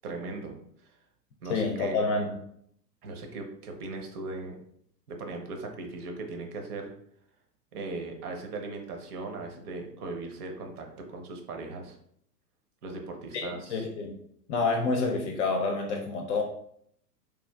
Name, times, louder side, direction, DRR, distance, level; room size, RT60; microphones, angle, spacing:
voice 1, 0.0-0.6 0.8-1.0 1.4-2.1 3.0-4.6 5.1-6.9 7.7-12.0 12.8-13.8, right 3 dB, 65° right, 3 dB, 0.8 m, -38 dB
voice 2, 1.5-2.4 13.3-14.2 14.5-16.4, left 3 dB, 45° left, 2 dB, 0.5 m, -28 dB
3.1 x 2.4 x 2.3 m, 0.68 s
hypercardioid pair, 105°, 49 cm